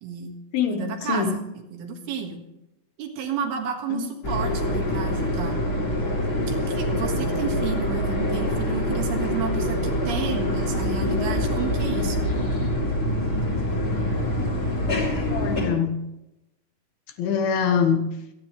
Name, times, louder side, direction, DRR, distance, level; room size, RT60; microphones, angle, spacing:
voice 1, 0.0-0.4 0.7-2.4 3.0-5.6 6.5-12.3, right 6 dB, 80° right, 3 dB, 3.6 m, -32 dB
voice 2, 0.5-1.3 3.9-4.1 15.3-16.1 17.2-18.1, left 6 dB, 75° left, 6 dB, 3.0 m, -24 dB
sound 1, 4.2-15.7, left 1 dB, 30° left, 3.0 m, -25 dB
27.0 x 9.7 x 3.2 m, 0.91 s
omnidirectional pair, 4.5 m